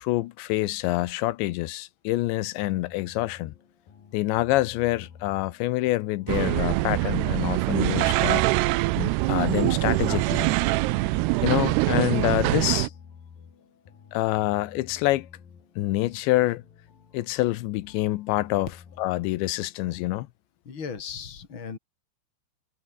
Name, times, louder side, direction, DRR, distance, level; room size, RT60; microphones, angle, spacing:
voice 1, 0.0-3.5 4.1-8.4 9.0-10.5 11.4-12.9 14.1-15.3 15.8-16.6 17.1-18.7 19.0-20.3, left 18 dB, 85° left, 3.2 m, -26 dB
sound 1, 2.6-20.1, left 6 dB, 55° left, 5.2 m, -51 dB
sound 2, 6.3-12.9, right 20 dB, 85° right, 2.6 m, -24 dB
voice 2, 20.6-21.8, left 6 dB, 35° left, 2.7 m, -36 dB
omnidirectional pair, 5.1 m